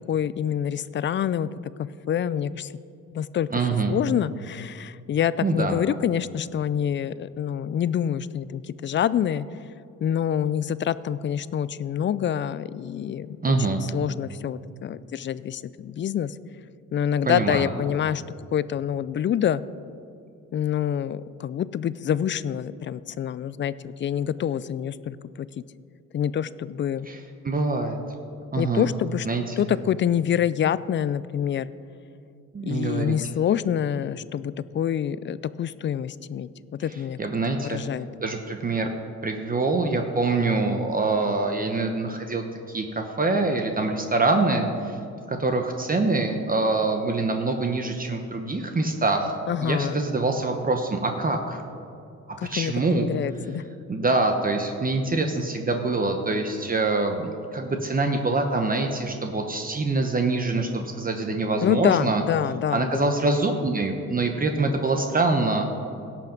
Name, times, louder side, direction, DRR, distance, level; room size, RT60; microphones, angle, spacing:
voice 1, 0.1-1.5 2.1-2.7 3.1-3.5 3.9-9.4 10.0-16.3 16.9-18.2 18.5-19.6 20.5-25.5 26.1-27.1 28.6-29.3 29.6-31.7 32.6-36.5 36.8-37.2 37.6-38.1 49.5-50.0 52.4-53.6 61.6-63.1, left 9 dB, 40° left, 17 dB, 0.4 m, -26 dB
voice 2, 3.5-3.9 5.4-5.8 13.4-13.8 17.2-17.7 27.0-28.0 28.5-28.9 29.2-29.6 32.5-33.2 36.9-37.8 38.2-38.9 39.2-45.0 45.3-51.6 52.4-53.1 53.9-62.2 62.7-65.8, right 3 dB, 30° right, 4 dB, 0.9 m, -25 dB
17.0 x 5.8 x 5.2 m, 2.6 s
cardioid pair, 90°, 30 cm